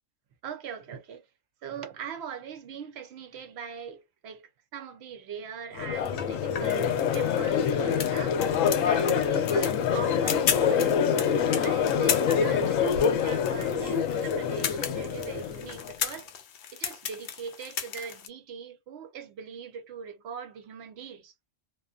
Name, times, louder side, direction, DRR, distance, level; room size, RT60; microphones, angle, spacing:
voice 1, 0.4-1.2 1.6-11.0 11.6-16.3 16.7-21.3, right 7 dB, 60° right, 0.8 m, -41 dB
Crowd, 5.8-15.9, left 7 dB, 80° left, 1.0 m, -26 dB
sound 1, 6.0-18.3, left 8 dB, 60° left, 0.6 m, -36 dB
2.5 x 2.4 x 2.3 m
omnidirectional pair, 1.4 m